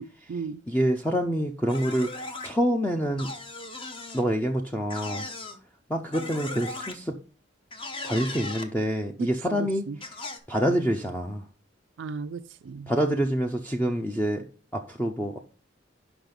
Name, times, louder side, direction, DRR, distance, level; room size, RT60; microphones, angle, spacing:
voice 1, 0.0-0.6 9.2-10.0 12.0-12.9, right 5 dB, 90° right, 0.4 m, -36 dB
voice 2, 0.7-3.3 4.1-5.3 5.9-7.2 8.0-9.8 10.5-11.4 12.9-14.4 14.7-15.4, equal, 10° left, 0.6 m, -26 dB
sound 1, 1.7-2.5 3.2-4.2 4.9-5.6 6.1-6.9 7.7-8.7 10.0-10.4, left 2 dB, 30° left, 0.9 m, -37 dB
6.1 x 5.5 x 5.2 m
head